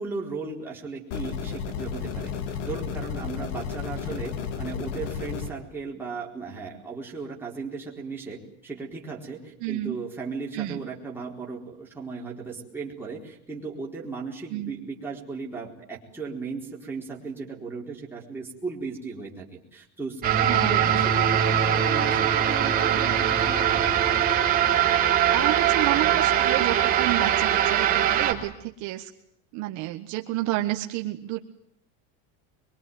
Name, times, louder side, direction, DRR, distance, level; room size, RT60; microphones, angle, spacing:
voice 1, 0.0-23.8, right 4 dB, 5° right, -3 dB, 4.2 m, -36 dB
sound 1, 1.1-5.5, left 7 dB, 85° left, 2.9 m, -32 dB
voice 2, 9.6-10.0 10.6-10.8 14.5-14.7 20.5-20.9 25.3-29.1 29.5-31.4, right 16 dB, 50° right, 4 dB, 1.6 m, -30 dB
sound 2, 20.2-28.3, right 9 dB, 25° right, 3.4 m, -22 dB
24.0 x 23.5 x 9.4 m, 0.72 s
cardioid pair, 165°, 37 cm